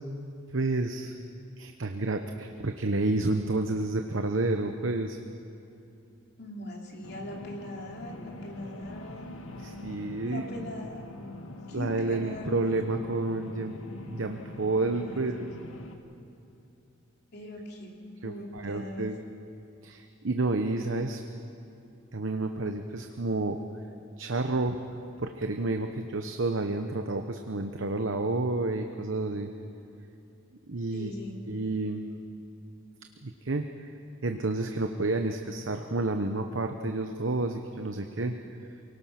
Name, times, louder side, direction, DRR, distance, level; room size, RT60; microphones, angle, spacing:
voice 1, 0.5-1.1 1.6-5.2 9.6-10.4 11.7-13.8 14.1-15.5 18.2-19.2 19.8-21.2 22.1-23.6 24.2-24.8 25.2-29.5 30.7-31.1 31.5-32.0 33.2-33.9 34.2-38.3, right 2 dB, 70° right, 5 dB, 0.9 m, -30 dB
voice 2, 6.4-9.3 10.2-11.0 11.7-12.8 14.9-15.2 17.3-18.0 18.2-19.1 30.9-31.4, left 1 dB, 55° left, -1 dB, 3.3 m, -41 dB
sound 1, 7.0-16.0, left 2 dB, 80° left, 1.7 m, -43 dB
28.0 x 18.5 x 5.9 m, 2.7 s
head